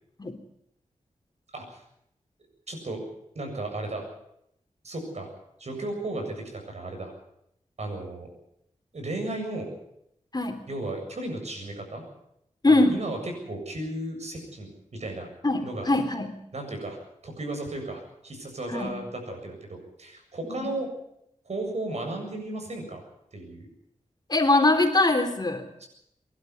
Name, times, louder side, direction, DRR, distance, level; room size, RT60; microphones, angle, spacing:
voice 1, 2.7-3.0 3.3-4.0 4.8-5.3 5.6-7.1 7.8-8.3 8.9-9.7 10.7-12.0 12.7-15.3 15.6-15.9 16.5-17.0 17.2-20.9 21.4-23.0 23.3-23.7 25.8-25.9, right 2 dB, 65° right, 3 dB, 7.7 m, -34 dB
voice 2, 10.3-10.6 12.6-13.0 15.4-16.4 18.7-19.0 20.4-20.6 24.3-25.6, left 2 dB, 35° left, 5 dB, 3.5 m, -22 dB
23.5 x 12.0 x 9.8 m, 0.77 s
wide cardioid pair, 65°, 12 cm